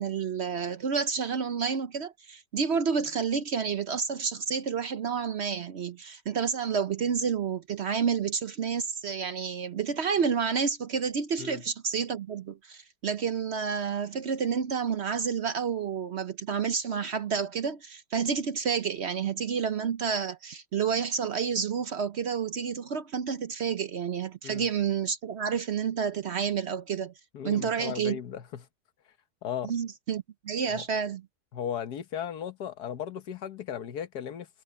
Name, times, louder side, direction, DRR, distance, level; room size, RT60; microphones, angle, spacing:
voice 1, 0.0-27.1 27.4-28.2 29.6-31.2, right 6 dB, 55° right, 0.9 m, -30 dB
voice 2, 27.3-28.7 29.4-29.7 30.7-30.8 31.5-34.5, left 9 dB, 85° left, 1.7 m, -36 dB
omnidirectional pair, 1.7 m